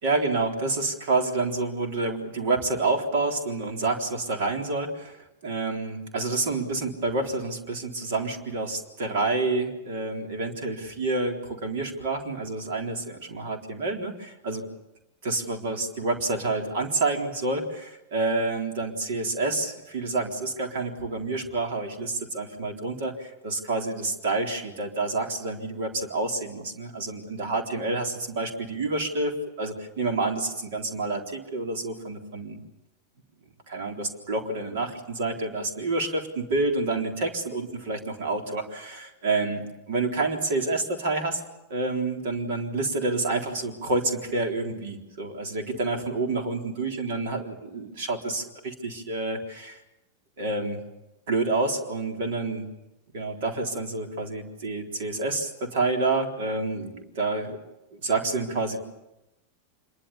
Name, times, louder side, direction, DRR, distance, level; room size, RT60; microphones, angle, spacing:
voice 1, 0.0-14.6 15.2-29.3 29.6-32.6 33.7-39.6 39.9-41.4 41.7-49.8 50.4-50.8 51.3-52.7 53.1-57.6 57.9-58.8, right 3 dB, 55° right, 3 dB, 4.0 m, -28 dB
26.5 x 22.5 x 7.2 m, 0.93 s
figure-of-eight pair, 90°, 0 cm